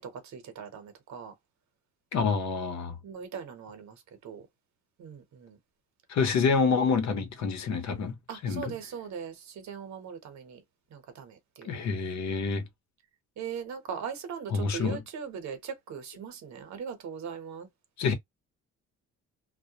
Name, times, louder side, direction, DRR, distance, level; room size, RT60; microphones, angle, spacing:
voice 1, 0.0-1.3 3.0-4.5 5.0-5.6 8.3-10.6 10.9-11.8 13.4-17.7, right 7 dB, 65° right, 1.0 m, -40 dB
voice 2, 2.1-3.0 6.1-8.2 8.4-8.8 11.6-12.7 14.5-15.0 18.0-18.1, left 5 dB, 65° left, 0.8 m, -27 dB
2.2 x 2.1 x 2.8 m
cardioid pair, 90°, 30 cm